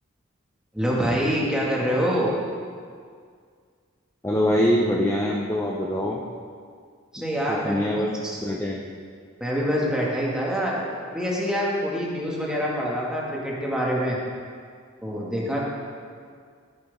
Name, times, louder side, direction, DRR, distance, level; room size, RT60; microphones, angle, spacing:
voice 1, 0.7-2.4 7.1-8.4 9.4-14.2 15.0-15.6, equal, 5° right, -5 dB, 2.0 m, -26 dB
voice 2, 4.2-6.2 7.5-8.1 8.4-8.9, equal, 15° left, -2 dB, 0.7 m, -24 dB
15.5 x 9.7 x 3.7 m, 2.1 s
head